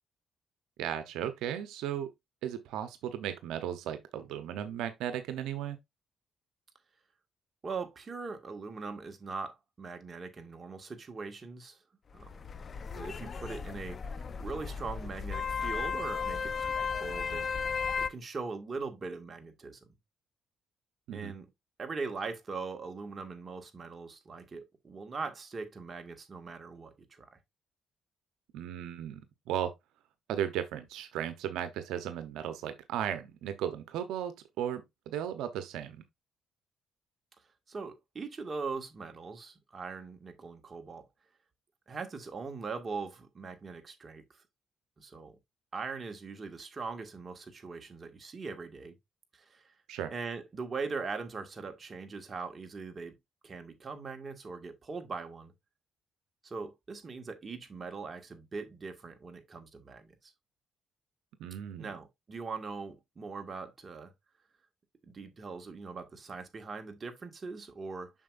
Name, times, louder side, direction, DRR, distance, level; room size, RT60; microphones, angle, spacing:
voice 1, 0.8-2.1 2.4-5.8 21.1-21.3 28.5-29.2 29.5-29.7 30.3-36.0 49.9-50.1 61.4-61.9, right 10 dB, 90° right, 0.8 m, -36 dB
voice 2, 7.6-11.8 12.1-12.4 12.9-17.5 18.0-19.8 21.1-21.5 21.8-27.3 37.7-41.0 41.9-44.2 45.0-45.4 45.7-48.9 49.3-49.7 50.1-53.1 53.4-55.5 56.4-60.3 61.8-64.1 65.1-68.1, right 4 dB, 35° right, 1.8 m, -41 dB
sound 1, 12.1-18.1, left 5 dB, 45° left, 0.6 m, -35 dB
7.4 x 6.1 x 2.5 m
cardioid pair, 90°, 0 cm